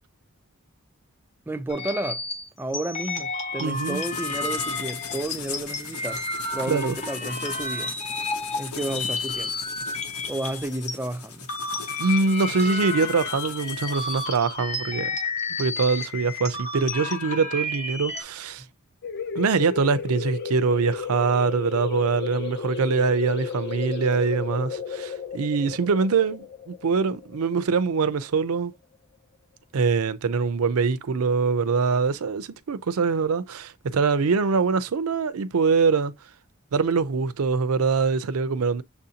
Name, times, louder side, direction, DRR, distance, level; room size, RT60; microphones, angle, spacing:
voice 1, 1.5-2.2 2.6-6.2 6.5-7.9 8.6-9.6 10.3-11.5, right 2 dB, 10° right, 0.4 m, -31 dB
sound 1, 1.7-10.9 11.3-18.2, left 3 dB, 30° left, 0.9 m, -31 dB
sound 2, 3.6-14.4, left 6 dB, 85° left, 0.9 m, -39 dB
voice 2, 3.6-4.0 6.7-7.0 12.0-15.1 15.6-18.6 19.3-28.7 29.7-36.1 36.7-38.8, right 5 dB, 80° right, 0.5 m, -23 dB
sound 3, 19.0-28.4, left 6 dB, 50° left, 0.6 m, -33 dB
7.0 x 2.6 x 2.8 m
head